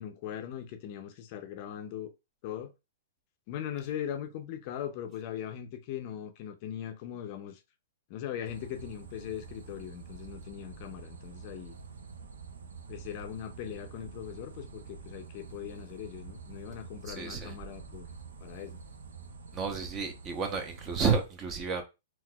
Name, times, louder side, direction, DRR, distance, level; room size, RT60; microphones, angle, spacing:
voice 1, 0.0-2.1 2.4-2.7 3.5-7.6 8.1-11.8 12.9-18.1 18.4-18.8, left 10 dB, 45° left, 0.5 m, -40 dB
sound 1, 8.5-21.3, right 5 dB, 85° right, 0.5 m, -47 dB
voice 2, 17.1-17.5 19.5-21.8, right 5 dB, 25° right, 0.7 m, -31 dB
3.9 x 2.4 x 2.2 m
hypercardioid pair, 130°, 0 cm